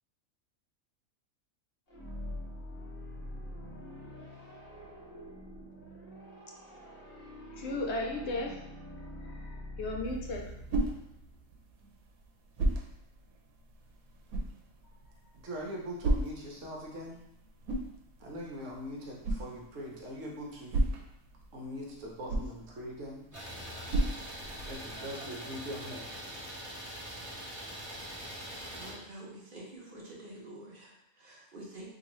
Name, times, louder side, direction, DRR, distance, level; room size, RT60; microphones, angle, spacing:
sound 1, 1.9-11.6, equal, 30° left, 1.0 m, -45 dB
voice 1, 7.5-8.6 9.2-10.5, left 2 dB, 65° left, 0.8 m, -35 dB
sound 2, 10.0-25.0, right 1 dB, 85° right, 1.0 m, -36 dB
voice 2, 15.4-17.2 18.2-20.8 21.5-23.3 24.7-26.0, equal, 65° right, 1.0 m, -41 dB
Idling, 23.3-28.9, equal, 15° right, 0.8 m, -43 dB
voice 3, 26.7-27.2 28.5-31.9, right 1 dB, 45° right, 0.8 m, -48 dB
3.7 x 2.5 x 3.0 m
omnidirectional pair, 1.5 m